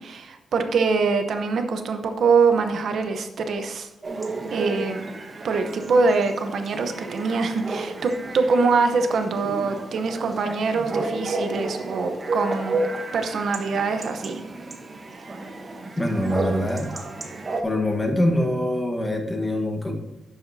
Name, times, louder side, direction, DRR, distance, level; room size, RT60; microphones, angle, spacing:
voice 1, 0.0-3.9 4.5-5.1 5.4-12.8 13.1-14.4, right 4 dB, 60° right, 6 dB, 0.8 m, -23 dB
Chatter / Bark / Livestock farm animals working animals, 4.0-17.6, right 2 dB, 30° right, 1.0 m, -32 dB
voice 2, 16.0-16.9 17.6-19.9, left 1 dB, 15° left, 3 dB, 1.2 m, -24 dB
11.5 x 7.9 x 2.7 m, 1.0 s
wide cardioid pair, 175°, 0 cm